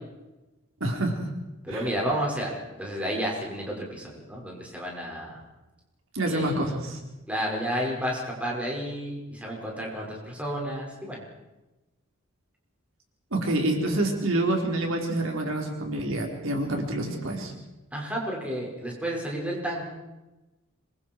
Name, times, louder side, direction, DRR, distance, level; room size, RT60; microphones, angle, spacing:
voice 1, 0.8-1.2 1.7-1.9 6.1-7.0 13.3-17.5, right 1 dB, 75° right, 1 dB, 4.1 m, -27 dB
voice 2, 1.6-5.4 6.3-6.7 7.3-11.2 17.9-19.8, equal, 5° right, -3 dB, 5.7 m, -31 dB
26.0 x 23.0 x 4.7 m, 1.0 s
head